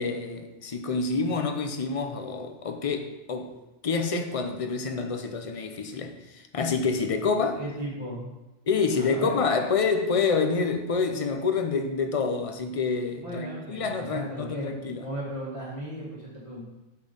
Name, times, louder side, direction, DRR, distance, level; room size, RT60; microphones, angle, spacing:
voice 1, 0.0-3.5 3.8-7.6 8.7-15.0, left 4 dB, 35° left, 0.7 m, -27 dB
voice 2, 7.6-8.3 8.9-9.4 13.2-16.6, right 1 dB, 25° right, 2.0 m, -36 dB
8.4 x 4.5 x 5.4 m
omnidirectional pair, 1.2 m